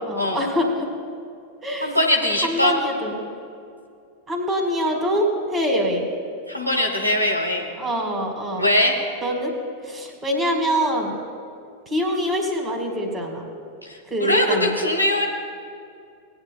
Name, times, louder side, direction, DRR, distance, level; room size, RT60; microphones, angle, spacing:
voice 1, 0.1-0.9 1.6-2.0 2.4-3.2 4.3-6.1 7.8-8.7 9.2-9.5 9.8-11.2 11.9-13.4 14.1-14.7, equal, 20° right, 3 dB, 2.1 m, -24 dB
voice 2, 1.8-2.7 6.5-7.7 8.6-9.0 13.8-15.2, left 1 dB, 90° left, 1 dB, 1.0 m, -21 dB
18.5 x 9.9 x 2.3 m, 2.4 s
figure-of-eight pair, 90°, 0 cm